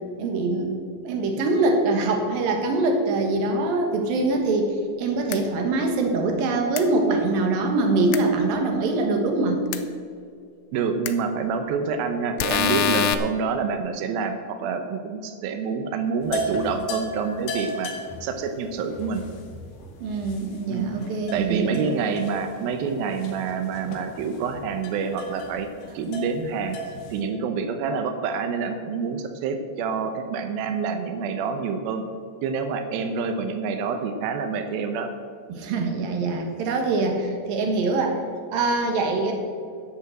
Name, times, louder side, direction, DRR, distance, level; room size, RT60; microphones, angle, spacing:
voice 1, 0.2-0.8 1.0-4.7 5.0-9.6 20.0-21.8 35.5-38.2 38.5-39.3, right 3 dB, 60° right, 3 dB, 2.7 m, -23 dB
sound 1, 5.3-5.4 6.8-6.9 8.1-8.2 9.7-9.8 11.1-11.2 12.4-13.1, left 9 dB, 85° left, 3.2 m, -23 dB
voice 2, 10.7-17.9 18.2-19.2 20.7-20.9 21.3-25.7 25.9-26.8 27.1-32.0 32.4-35.1, right 5 dB, 90° right, 6 dB, 2.0 m, -27 dB
sound 2, 16.2-27.2, equal, 65° left, 3.5 m, -36 dB
10.5 x 8.9 x 7.7 m, 2.2 s
omnidirectional pair, 5.5 m